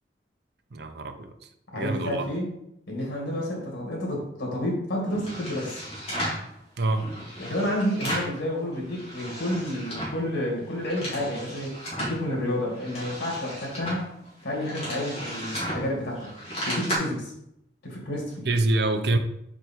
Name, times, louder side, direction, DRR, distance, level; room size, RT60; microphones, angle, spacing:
voice 1, 0.7-1.3 1.7-2.3 6.8-7.2 18.4-19.2, right 2 dB, 65° right, 0.6 m, -25 dB
voice 2, 1.7-2.5 2.9-5.8 7.4-14.1 14.4-16.3 16.6-17.3 17.8-18.4, left 1 dB, 85° left, 2.2 m, -30 dB
sound 1, 5.1-6.5 7.0-8.4 8.7-10.2 10.6-12.2 12.7-17.0, equal, 35° left, 2.3 m, -34 dB
4.9 x 4.6 x 4.4 m
head